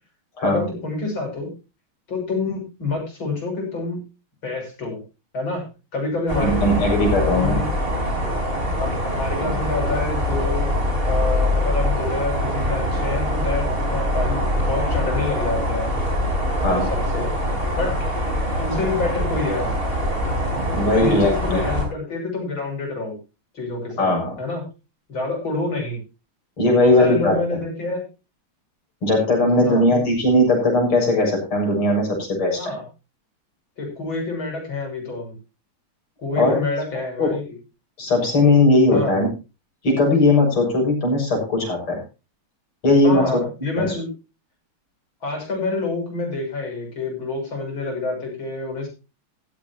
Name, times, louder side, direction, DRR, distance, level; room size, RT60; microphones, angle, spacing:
voice 1, 0.4-1.5 2.1-4.0 4.4-5.0 5.3-5.7 5.9-6.6 7.3-7.7 8.8-10.7 11.1-15.9 16.7-17.3 17.7-18.1 18.6-19.7 20.9-23.2 23.5-24.1 24.4-24.6 25.1-26.0 26.7-28.0 29.6-29.9 32.6-32.8 33.8-35.3 36.2-37.6 38.9-39.2 43.0-44.1 45.2-48.9, left 3 dB, 65° left, 1 dB, 7.5 m, -27 dB
sound 1, 6.3-21.9, left 1 dB, 25° right, 4.8 m, -23 dB
voice 2, 6.4-7.6 16.6-16.9 20.6-21.6 24.0-24.3 26.6-27.4 29.0-32.7 36.4-36.6 37.2-37.3 38.0-39.3 39.8-42.0 42.8-43.4 43.8-44.0, left 2 dB, 80° left, 0 dB, 7.8 m, -18 dB
15.5 x 14.5 x 2.9 m, 0.30 s
omnidirectional pair, 2.4 m